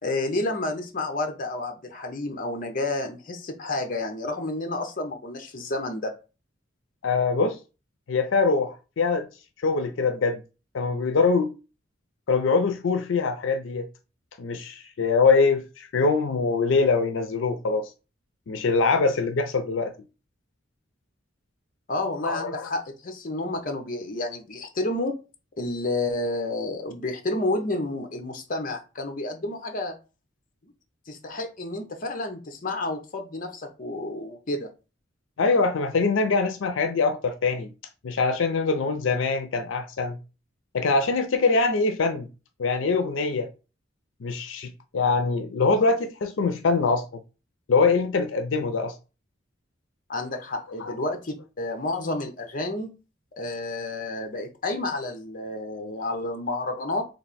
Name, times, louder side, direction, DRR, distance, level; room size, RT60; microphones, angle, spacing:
voice 1, 0.0-6.1 21.9-25.1 25.6-29.9 30.6-30.7 31.1-34.7 50.1-52.9 53.4-57.1, left 2 dB, 45° left, 0.8 m, -30 dB
voice 2, 7.0-7.6 8.1-9.3 9.6-10.4 10.7-11.5 12.3-13.9 14.4-17.9 18.5-19.9 22.2-22.7 35.4-37.7 38.0-40.2 40.7-42.3 42.6-43.5 44.2-47.2 47.7-48.9 50.8-50.9, left 4 dB, 85° left, 0.5 m, -23 dB
3.3 x 2.4 x 4.1 m
head